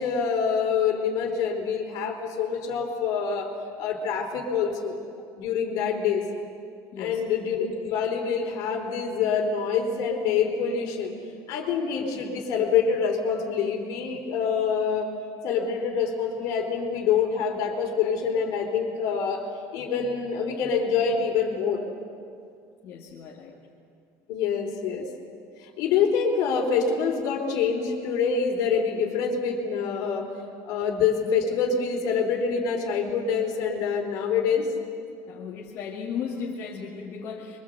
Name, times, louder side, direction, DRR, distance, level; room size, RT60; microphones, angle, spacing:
voice 1, 0.0-3.5 3.8-5.0 5.4-6.2 7.0-11.1 11.5-15.1 15.4-19.4 19.7-21.8 24.3-25.1 25.6-30.3 30.6-34.7, left 6 dB, 50° left, 2 dB, 4.2 m, -26 dB
voice 2, 22.8-23.6 35.3-37.6, left 6 dB, 35° left, -4 dB, 2.4 m, -36 dB
26.0 x 24.0 x 8.1 m, 2.3 s
cardioid pair, 175°, 8 cm